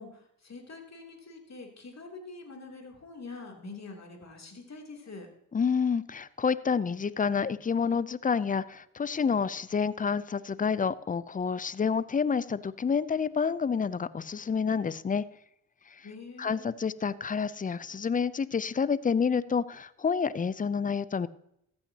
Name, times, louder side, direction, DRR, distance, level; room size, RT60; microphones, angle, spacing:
voice 1, 0.0-5.3 16.0-16.7, left 3 dB, 35° left, 2 dB, 2.9 m, -45 dB
voice 2, 5.5-15.2 16.4-21.3, left 6 dB, 20° left, 18 dB, 0.5 m, -28 dB
14.0 x 8.8 x 2.8 m, 0.76 s
supercardioid pair, 50°, 45 cm